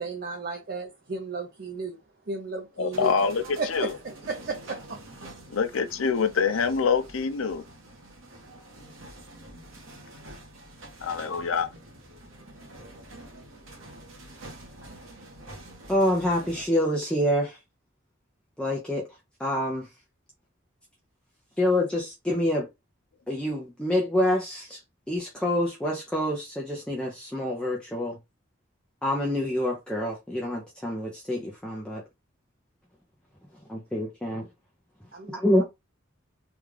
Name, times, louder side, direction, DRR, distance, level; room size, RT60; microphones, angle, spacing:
voice 1, 0.0-2.0 2.3-3.1 3.6-5.0 35.1-35.4, right 3 dB, 45° right, 0.6 m, -34 dB
voice 2, 2.8-3.9 5.5-7.6 11.0-11.7, left 5 dB, 85° left, 0.6 m, -25 dB
sound 1, 2.9-16.7, right 1 dB, 80° right, 1.3 m, -46 dB
voice 3, 15.9-17.6 18.6-19.1 19.4-19.9 21.6-22.7 23.3-24.8 25.1-28.2 29.0-32.0 33.7-34.5 35.3-35.6, left 1 dB, 5° left, 0.6 m, -27 dB
3.5 x 2.4 x 3.2 m
head